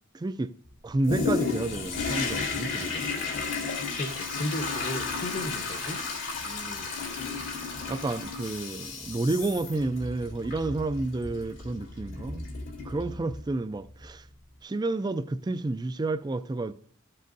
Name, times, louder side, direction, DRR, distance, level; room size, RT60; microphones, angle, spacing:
voice 1, 0.1-0.5 0.8-3.1 7.9-12.4 12.8-14.2 14.6-16.7, right 2 dB, 20° right, 0.3 m, -30 dB
Toilet flush, 1.0-13.5 14.0-14.1, left 4 dB, 85° left, 2.6 m, -33 dB
voice 2, 4.0-6.0 6.4-6.9, left 1 dB, 50° left, 0.9 m, -35 dB
13.5 x 7.7 x 2.6 m
head